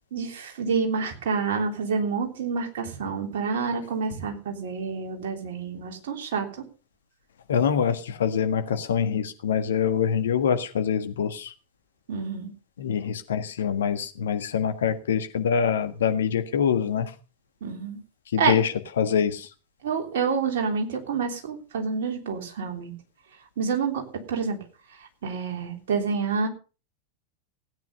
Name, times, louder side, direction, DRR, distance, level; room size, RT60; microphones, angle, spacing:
voice 1, 0.1-6.6 12.1-12.5 17.6-18.0 18.4-18.5 19.8-22.9 23.6-24.6 25.2-26.5, right 5 dB, 55° right, 3 dB, 3.3 m, -28 dB
voice 2, 7.5-11.5 12.8-17.1 18.3-19.5, left 7 dB, 65° left, 8 dB, 1.6 m, -25 dB
16.5 x 9.3 x 5.4 m, 0.35 s
figure-of-eight pair, 90°, 0 cm